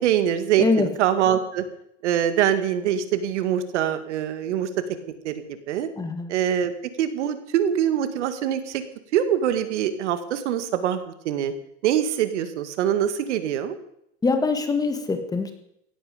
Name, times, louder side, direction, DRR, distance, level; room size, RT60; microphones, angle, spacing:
voice 1, 0.0-1.7 2.0-4.7 5.2-5.9 6.3-6.7 7.0-8.8 9.1-11.5 11.8-13.8, right 10 dB, 80° right, 10 dB, 2.1 m, -24 dB
voice 2, 0.6-0.9 6.0-6.3 14.2-15.5, left 4 dB, 10° left, 7 dB, 1.8 m, -23 dB
17.0 x 14.5 x 5.2 m, 0.76 s
supercardioid pair, 150°, 34 cm